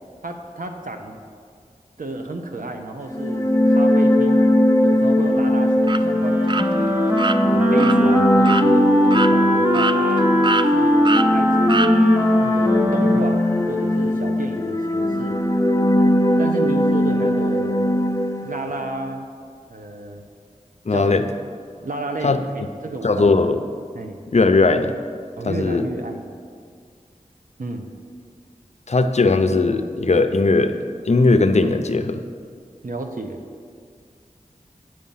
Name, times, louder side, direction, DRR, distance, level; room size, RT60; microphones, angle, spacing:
voice 1, 0.2-1.2 2.0-4.5 4.8-7.0 7.5-10.3 10.6-11.9 12.2-13.4 13.7-15.4 16.4-17.8 18.4-19.3 19.7-20.2 20.9-21.1 21.8-23.5 23.9-24.2 25.4-26.3 27.6-27.9 32.8-33.4, right 2 dB, 75° right, 4 dB, 0.8 m, -32 dB
sound 1, 3.1-18.8, left 1 dB, 20° left, 0.7 m, -19 dB
sound 2, 5.8-6.0 6.5-6.7 7.2-7.4 7.8-8.0 8.4-8.7 9.1-9.3 9.7-10.2 10.4-10.7 11.0-11.3 11.7-11.9, right 3 dB, 35° right, 0.3 m, -23 dB
Wind instrument woodwind instrument, 6.0-14.2, equal, 15° right, 0.8 m, -21 dB
voice 2, 20.9-21.3 22.2-22.4 23.0-23.6 24.3-24.9 25.4-25.9 28.9-30.7 31.1-32.2, left 3 dB, 55° left, 8 dB, 0.5 m, -18 dB
7.5 x 6.4 x 5.6 m, 2.1 s
wide cardioid pair, 40°, 14 cm